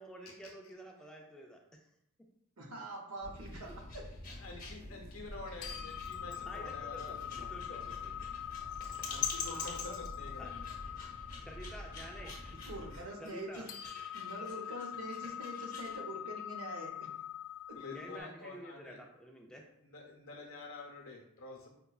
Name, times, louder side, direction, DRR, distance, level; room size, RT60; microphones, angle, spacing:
voice 1, 0.0-1.9 4.9-5.0 6.5-8.1 8.8-8.9 10.4-10.5 11.5-12.5 13.2-13.7 17.9-19.6, right 1 dB, 5° left, 0 dB, 0.3 m, -50 dB
voice 2, 2.6-4.0 9.5-9.9 12.7-13.8 14.1-17.1 17.7-17.8, right 1 dB, 75° right, 1 dB, 0.7 m, -44 dB
sound 1, 3.2-13.1, left 1 dB, 20° right, 0.7 m, -49 dB
sound 2, 3.3-16.0, left 6 dB, 35° left, 0.8 m, -45 dB
voice 3, 4.3-7.8 9.1-10.6 17.7-19.0 19.8-21.7, left 3 dB, 70° left, 0 dB, 0.8 m, -48 dB
sound 3, 5.6-18.2, left 11 dB, 85° left, 0.4 m, -44 dB
5.3 x 2.2 x 2.3 m, 0.78 s
head